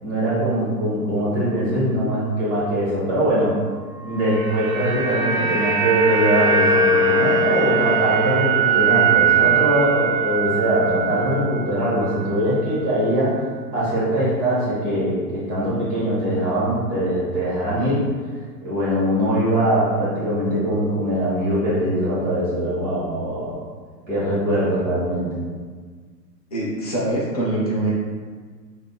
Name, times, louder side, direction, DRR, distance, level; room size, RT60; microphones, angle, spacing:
voice 1, 0.0-3.6 4.0-13.4 13.7-18.1 18.6-23.6 24.1-25.3, right 1 dB, 20° right, -9 dB, 1.0 m, -22 dB
sound 1, 4.1-12.4 12.6-12.8, right 4 dB, 55° right, 0.5 m, -21 dB
voice 2, 26.5-27.9, right 1 dB, 25° left, -6 dB, 0.3 m, -23 dB
3.9 x 2.1 x 2.3 m, 1.5 s
figure-of-eight pair, 120°, 49 cm